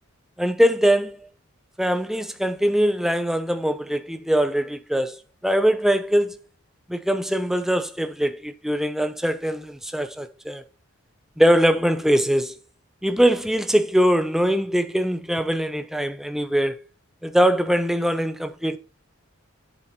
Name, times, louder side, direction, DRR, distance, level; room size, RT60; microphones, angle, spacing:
voice 1, 0.4-1.2 1.8-5.2 5.4-6.3 6.9-10.6 11.4-12.6 13.0-16.8 17.2-18.8, equal, ahead, 0.7 m, -22 dB
7.8 x 7.6 x 4.3 m
head